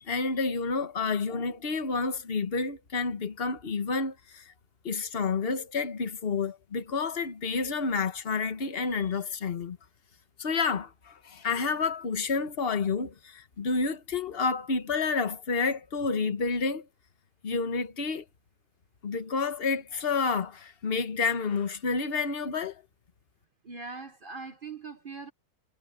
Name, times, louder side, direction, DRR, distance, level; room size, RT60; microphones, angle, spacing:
voice 1, 0.0-4.5 4.8-9.8 10.4-16.9 17.4-18.2 19.0-22.8, left 4 dB, 35° left, 1.4 m, -29 dB
voice 2, 23.6-25.3, right 4 dB, 40° right, 0.8 m, -41 dB
omnidirectional pair, 1.9 m